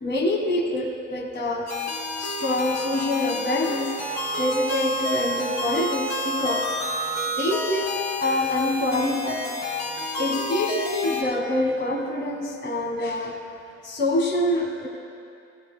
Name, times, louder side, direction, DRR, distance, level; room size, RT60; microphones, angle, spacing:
voice 1, 0.0-1.7 2.2-3.9 4.4-6.7 7.4-9.4 10.2-13.4 13.8-14.9, left 1 dB, 35° left, 1 dB, 1.5 m, -25 dB
sound 1, 1.7-11.2, left 1 dB, 65° left, 2.5 m, -29 dB
17.5 x 14.5 x 2.2 m, 2.6 s
cardioid pair, 90°, 30 cm